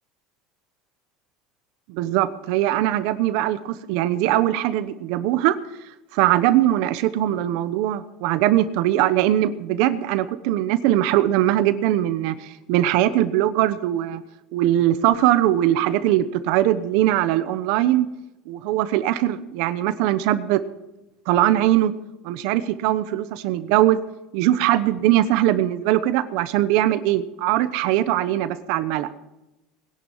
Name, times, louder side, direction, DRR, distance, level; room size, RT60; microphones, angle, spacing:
voice 1, 1.9-5.6 6.1-14.2 14.5-18.1 18.5-20.6 21.3-21.9 22.2-24.0 24.3-29.1, right 13 dB, 65° right, 12 dB, 1.0 m, -21 dB
20.5 x 11.0 x 5.7 m, 0.95 s
cardioid pair, 165°, 0 cm